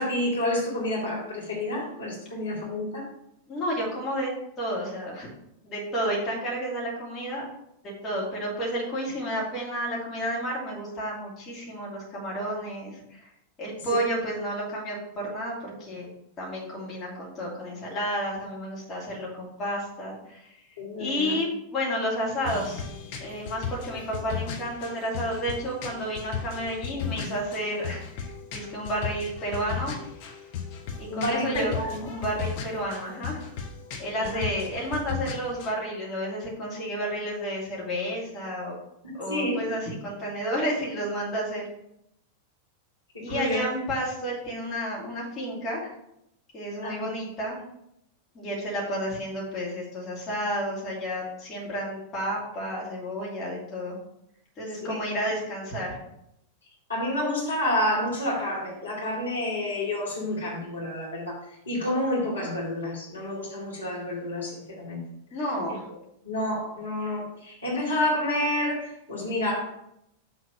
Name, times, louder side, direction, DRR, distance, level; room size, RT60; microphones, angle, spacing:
voice 1, 0.0-3.1 13.9-14.0 20.8-21.4 31.1-32.1 34.1-34.4 39.3-39.6 43.1-43.6 46.8-47.0 54.8-55.0 56.9-61.4 61.7-65.0 65.7-65.8 66.2-69.8, left 1 dB, 75° left, -6 dB, 2.5 m, -29 dB
voice 2, 3.5-4.3 4.6-5.3 5.6-7.4 8.0-13.0 13.6-16.1 16.4-20.5 21.0-22.9 23.2-30.0 31.0-33.5 34.0-38.7 39.2-41.6 43.2-45.9 46.5-47.6 48.3-54.0 54.6-56.0 65.3-65.8, equal, 25° left, -5 dB, 2.7 m, -31 dB
sound 1, 22.4-35.7, left 7 dB, 45° left, 1.1 m, -36 dB
6.4 x 3.9 x 6.3 m, 0.79 s
figure-of-eight pair, 90°, 0 cm